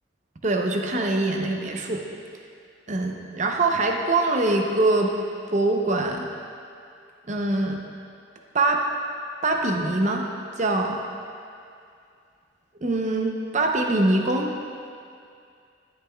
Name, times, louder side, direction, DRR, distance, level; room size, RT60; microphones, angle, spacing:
voice 1, 0.4-2.0 2.9-5.1 5.5-6.3 7.3-7.8 8.5-8.8 9.4-10.3 10.6-11.0 12.8-14.5, right 2 dB, 35° right, 2 dB, 0.6 m, -23 dB
10.5 x 10.0 x 2.3 m, 2.4 s
head